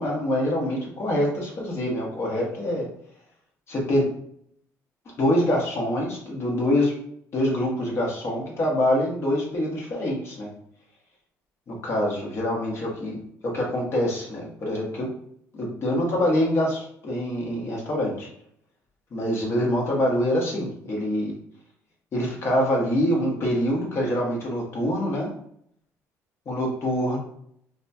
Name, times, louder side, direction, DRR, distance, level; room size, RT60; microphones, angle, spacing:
voice 1, 0.0-2.9 3.7-4.1 5.0-6.9 7.3-10.5 11.7-13.2 13.4-15.1 15.5-18.3 19.1-21.3 22.1-25.3 26.4-27.2, left 1 dB, 40° left, -2 dB, 1.4 m, -25 dB
5.1 x 2.3 x 2.7 m, 0.68 s
cardioid pair, 110°, 6 cm